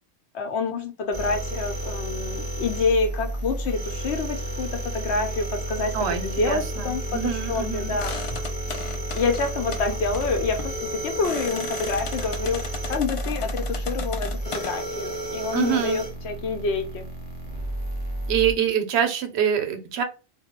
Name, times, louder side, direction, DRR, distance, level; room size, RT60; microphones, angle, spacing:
voice 1, 0.3-5.9 6.2-8.1 9.1-12.6 12.9-17.1, left 4 dB, 85° left, 5 dB, 1.0 m, -27 dB
sound 1, 1.1-18.5, right 1 dB, 25° right, 0.8 m, -31 dB
voice 2, 5.9-8.0 15.5-16.0 18.3-20.0, right 9 dB, 75° right, 7 dB, 0.8 m, -25 dB
sound 2, 8.0-14.7, left 4 dB, 55° left, 0.3 m, -36 dB
2.2 x 2.1 x 2.9 m, 0.33 s
omnidirectional pair, 1.1 m